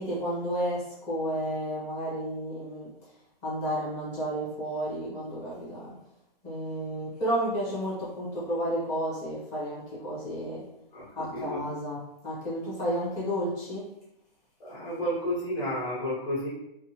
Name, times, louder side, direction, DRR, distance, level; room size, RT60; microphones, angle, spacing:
voice 1, 0.0-2.9 3.4-5.9 6.4-10.6 11.1-12.0 12.2-13.8, equal, 10° left, -10 dB, 0.8 m, -31 dB
voice 2, 10.9-11.7 14.6-16.5, equal, 30° left, -9 dB, 1.4 m, -32 dB
4.6 x 2.1 x 2.8 m, 0.82 s
hypercardioid pair, 175°, 30 cm